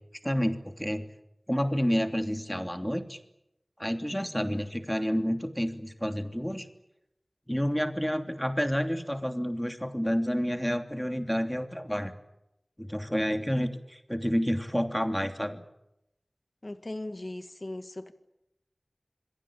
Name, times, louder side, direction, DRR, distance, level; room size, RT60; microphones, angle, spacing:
voice 1, 0.2-1.1 1.5-3.2 3.8-6.7 7.5-12.1 12.8-15.6, equal, 5° left, 6 dB, 3.0 m, -29 dB
voice 2, 16.6-18.1, left 1 dB, 45° left, 9 dB, 1.7 m, -38 dB
27.5 x 21.5 x 8.8 m, 0.87 s
wide cardioid pair, 50°, 0 cm